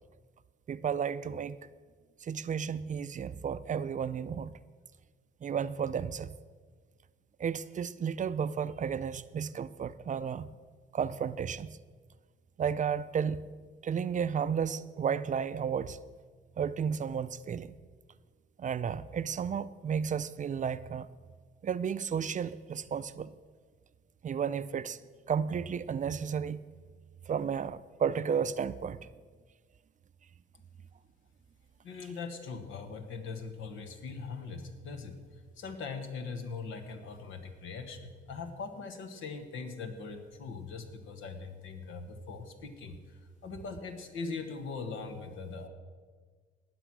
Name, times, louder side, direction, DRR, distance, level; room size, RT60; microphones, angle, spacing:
voice 1, 0.7-1.6 2.2-4.5 5.4-6.3 7.4-10.5 10.9-11.7 12.6-13.4 13.8-16.0 16.6-17.7 18.6-21.1 21.6-23.3 24.2-25.0 25.3-26.6 27.3-29.0, right 7 dB, 40° right, 0.5 m, -33 dB
voice 2, 31.8-35.2 35.6-45.7, left 4 dB, 80° left, 1.5 m, -41 dB
18.5 x 6.2 x 6.1 m
cardioid pair, 90°, 20 cm